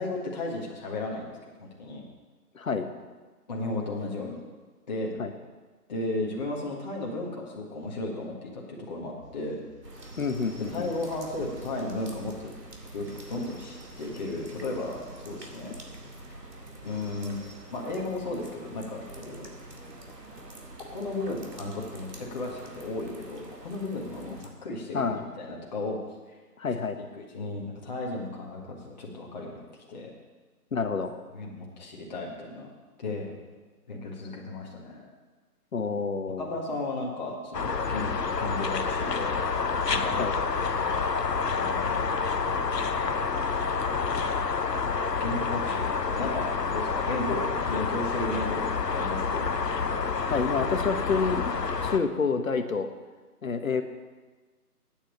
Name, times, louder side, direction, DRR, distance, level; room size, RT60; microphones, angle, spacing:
voice 1, 0.0-2.0 3.5-4.4 4.9-5.1 5.9-9.6 10.7-12.5 12.9-15.7 16.8-17.4 17.7-19.6 20.3-20.4 20.8-26.0 27.0-29.6 29.9-30.1 31.3-32.7 33.0-33.3 33.9-35.1 36.4-38.1 38.4-39.4 39.9-40.2 41.6-42.1 45.2-49.5, left 2 dB, 25° left, -3 dB, 1.7 m, -34 dB
voice 2, 2.5-2.9 5.2-5.3 10.2-10.9 24.9-25.2 26.6-27.0 30.7-31.1 35.7-36.5 40.2-40.3 47.3-47.4 50.2-51.5 51.8-52.9 53.4-53.8, left 5 dB, 55° left, 8 dB, 1.2 m, -28 dB
sound 1, 9.2-17.6, right 1 dB, 60° right, 4.2 m, -51 dB
sound 2, 9.8-24.5, right 2 dB, 85° right, 2.4 m, -46 dB
sound 3, 37.5-52.0, left 5 dB, 85° left, 1.0 m, -28 dB
8.8 x 8.2 x 8.3 m, 1.3 s
figure-of-eight pair, 155°, 47 cm